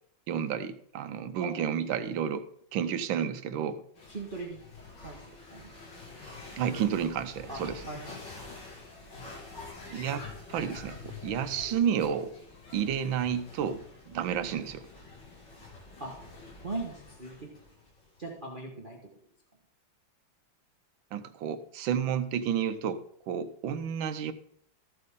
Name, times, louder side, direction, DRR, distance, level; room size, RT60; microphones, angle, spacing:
voice 1, 0.3-2.5 2.7-3.8 6.6-7.8 9.9-12.3 12.7-14.8 21.1-24.3, right 8 dB, 85° right, 11 dB, 1.5 m, -31 dB
sound 1, 4.0-18.3, left 3 dB, 65° left, 2.9 m, -47 dB
voice 2, 4.1-4.6 5.0-5.2 5.5-5.7 7.5-7.6 7.9-8.2 16.0-16.1 16.6-17.4 18.2-19.0, right 3 dB, 30° right, 0 dB, 1.3 m, -38 dB
14.0 x 7.8 x 3.7 m, 0.65 s
omnidirectional pair, 2.1 m